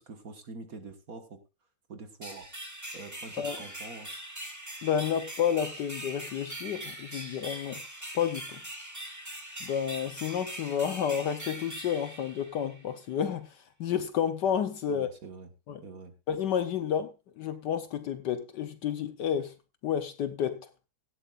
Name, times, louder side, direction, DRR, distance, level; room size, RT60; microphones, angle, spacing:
voice 1, 0.0-1.4 1.9-2.5 2.9-4.2 14.9-15.5 15.8-16.1, right 3 dB, 45° right, 1.7 m, -45 dB
sound 1, 2.2-12.9, right 1 dB, 10° right, 2.0 m, -42 dB
voice 2, 4.8-7.8 8.1-8.6 9.6-15.1 15.7-15.8 16.3-19.5 19.8-20.7, left 8 dB, 65° left, 1.3 m, -30 dB
17.0 x 12.5 x 2.4 m
omnidirectional pair, 2.3 m